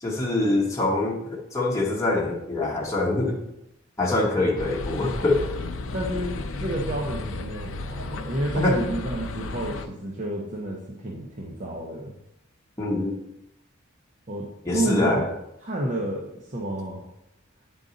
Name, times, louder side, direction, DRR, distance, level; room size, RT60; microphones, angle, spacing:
voice 1, 0.0-3.4 4.0-5.4 8.6-8.8 12.8-13.1 14.6-15.2, left 2 dB, 15° left, -4 dB, 1.0 m, -24 dB
sound 1, 4.6-9.9, left 2 dB, 70° left, 0.5 m, -33 dB
voice 2, 5.9-12.2 14.3-14.4 14.7-15.2 15.6-17.0, right 1 dB, 40° right, -3 dB, 0.8 m, -30 dB
8.9 x 3.9 x 4.0 m, 0.83 s
head